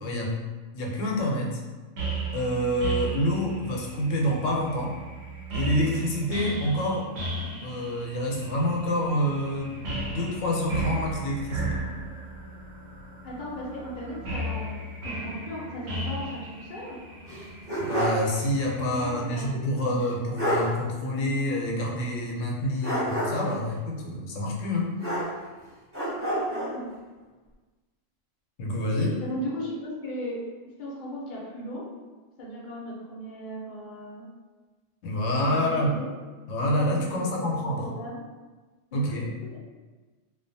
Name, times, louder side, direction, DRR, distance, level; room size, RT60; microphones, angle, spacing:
voice 1, 0.0-0.4 0.7-1.6 2.3-5.0 5.5-7.1 7.6-11.8 17.8-25.0 28.6-29.2 35.0-35.9 36.5-37.9 38.9-39.3, equal, 80° left, -1 dB, 0.9 m, -27 dB
sound 1, 2.0-19.2, right 1 dB, 65° right, 0.8 m, -35 dB
voice 2, 13.2-17.0 18.9-20.2 26.5-26.9 29.2-30.4 30.8-31.8 32.4-34.3 35.5-36.1 37.1-38.3 39.4-39.6, equal, 50° left, -5 dB, 0.6 m, -37 dB
sound 2, 17.3-18.3 18.6-18.7 20.0-20.1 20.4-20.7 22.8-23.5 25.0-25.6 25.9-26.7, right 1 dB, 15° right, 0.6 m, -28 dB
2.4 x 2.2 x 2.6 m, 1.3 s
omnidirectional pair, 1.3 m